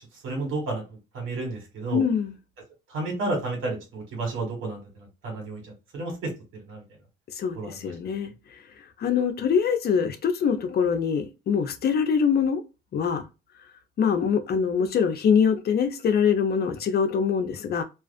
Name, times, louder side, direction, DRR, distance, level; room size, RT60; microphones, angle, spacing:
voice 1, 0.2-2.0 2.9-5.6 5.9-6.8 7.5-7.9, right 2 dB, 80° right, 1.4 m, -32 dB
voice 2, 1.9-2.3 7.3-8.6 9.0-12.6 12.9-13.3 14.0-17.8, left 6 dB, 55° left, 0.5 m, -24 dB
2.4 x 2.4 x 2.3 m
cardioid pair, 90°, 20 cm